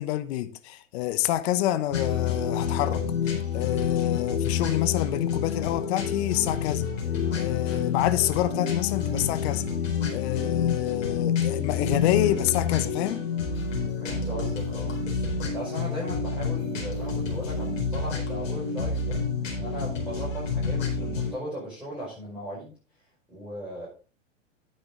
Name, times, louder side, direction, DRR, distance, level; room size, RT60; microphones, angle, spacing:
voice 1, 0.0-6.9 7.3-9.6 10.1-13.3, left 14 dB, 55° left, 1.1 m, -27 dB
sound 1, 1.9-21.3, left 6 dB, 80° left, 4.4 m, -28 dB
voice 2, 14.0-14.9 15.5-19.2 19.6-22.7 23.3-23.9, equal, ahead, 5.9 m, -37 dB
10.0 x 8.4 x 3.9 m
hypercardioid pair, 110°, 39 cm